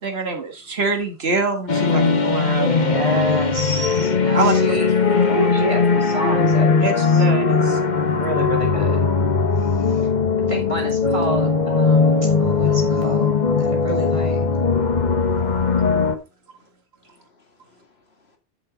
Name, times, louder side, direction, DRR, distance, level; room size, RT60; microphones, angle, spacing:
voice 1, 0.0-2.7 4.3-4.7 6.8-6.9 7.2-7.8 15.2-15.5, right 3 dB, 75° right, 1.7 m, -25 dB
sound 1, 1.7-16.2, left 4 dB, 45° left, 1.1 m, -19 dB
voice 2, 2.6-4.9 5.3-7.2 7.9-9.0 9.6-10.1 10.5-14.4, right 1 dB, 30° right, 4.0 m, -29 dB
voice 3, 17.0-18.4, left 5 dB, 75° left, 2.3 m, -51 dB
9.8 x 7.2 x 3.9 m
omnidirectional pair, 1.1 m